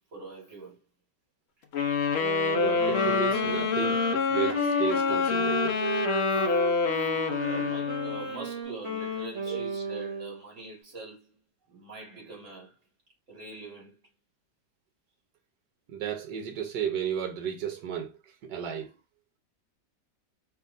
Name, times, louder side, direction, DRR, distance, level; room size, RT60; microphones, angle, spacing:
voice 1, 0.1-0.8 6.3-7.1 7.4-11.4 11.7-12.8 13.3-14.0, right 3 dB, 45° right, 2.3 m, -44 dB
sound 1, 1.7-8.3, left 5 dB, 70° left, 0.6 m, -26 dB
Wind instrument woodwind instrument, 2.2-10.4, right 3 dB, 20° right, 1.9 m, -35 dB
voice 2, 2.6-5.8 9.5-9.6 15.9-18.2 18.5-18.9, right 8 dB, 75° right, 1.3 m, -33 dB
4.7 x 2.9 x 2.6 m
omnidirectional pair, 1.9 m